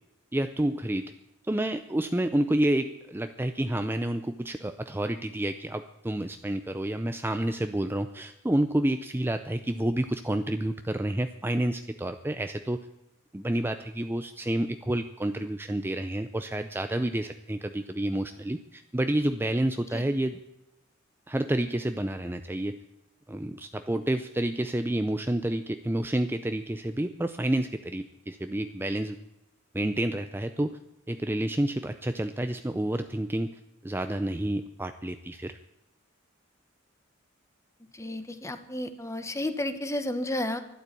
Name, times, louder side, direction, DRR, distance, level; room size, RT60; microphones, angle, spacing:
voice 1, 0.3-1.1 1.5-12.8 13.3-20.4 21.3-22.8 23.3-29.2 29.7-30.8 31.1-35.6, right 1 dB, 10° right, 8 dB, 0.5 m, -29 dB
voice 2, 37.9-40.6, left 1 dB, 15° left, 10 dB, 1.2 m, -32 dB
12.5 x 12.0 x 8.2 m, 0.93 s
head